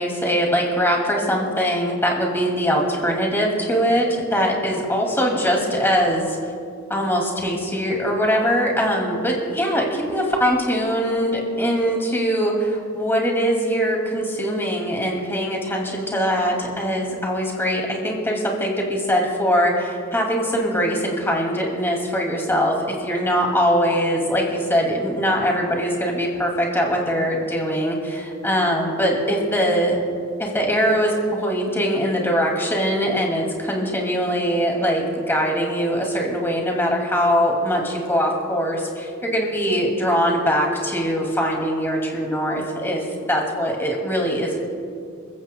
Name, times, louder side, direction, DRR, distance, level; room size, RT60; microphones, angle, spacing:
voice 1, 0.0-6.5 6.9-30.0 30.4-44.6, equal, 10° left, 0 dB, 2.4 m, -22 dB
28.0 x 15.0 x 2.3 m, 2.4 s
head